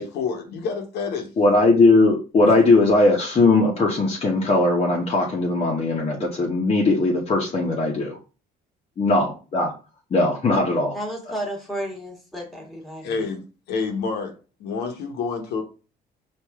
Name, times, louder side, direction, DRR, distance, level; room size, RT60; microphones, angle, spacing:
voice 1, 0.0-1.3 13.0-15.6, left 5 dB, 75° left, 1.0 m, -28 dB
voice 2, 1.4-8.2 9.0-9.7 10.1-11.0, left 2 dB, 35° left, 0.9 m, -19 dB
voice 3, 10.9-13.0, right 1 dB, ahead, 1.5 m, -32 dB
4.8 x 2.6 x 3.5 m
cardioid pair, 110°, 17 cm